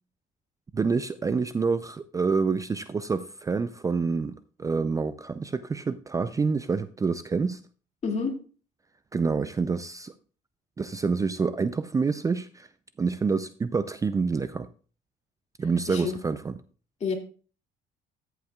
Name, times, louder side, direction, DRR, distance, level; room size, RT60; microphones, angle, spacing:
voice 1, 0.7-7.6 9.1-10.1 10.8-12.7 13.0-14.7 15.6-16.6, right 4 dB, 20° right, 0.4 m, -27 dB
voice 2, 8.0-8.4 15.9-16.2 17.0-17.1, left 5 dB, 40° left, 2.2 m, -28 dB
13.5 x 8.0 x 2.3 m
cardioid pair, 110°, 17 cm